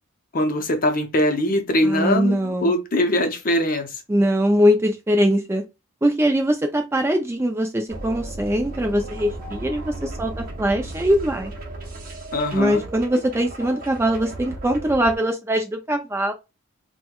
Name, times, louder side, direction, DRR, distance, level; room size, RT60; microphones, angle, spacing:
voice 1, 0.3-4.0 12.3-12.8, left 1 dB, 40° left, 0.6 m, -22 dB
voice 2, 1.8-2.7 4.1-5.6 6.0-11.5 12.5-16.3, equal, 10° right, 0.3 m, -22 dB
sound 1, 7.9-15.2, right 2 dB, 40° right, 0.8 m, -35 dB
4.4 x 2.2 x 2.2 m
head